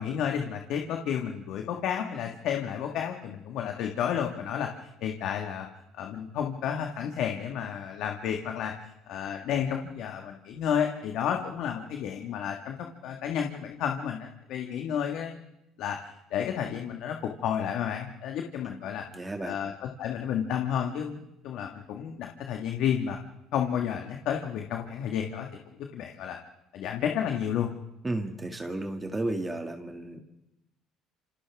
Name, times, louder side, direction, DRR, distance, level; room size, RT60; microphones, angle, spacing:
voice 1, 0.0-4.7 5.0-5.7 5.9-8.7 9.1-12.8 13.0-15.4 15.8-16.0 16.3-19.0 19.4-23.2 23.5-25.5 25.9-26.4 26.7-27.7, left 8 dB, 65° left, 3 dB, 1.6 m, -31 dB
voice 2, 19.1-19.5 28.0-30.2, right 2 dB, 15° right, 4 dB, 2.2 m, -33 dB
27.5 x 27.0 x 3.6 m, 0.88 s
supercardioid pair, 85°, 0 cm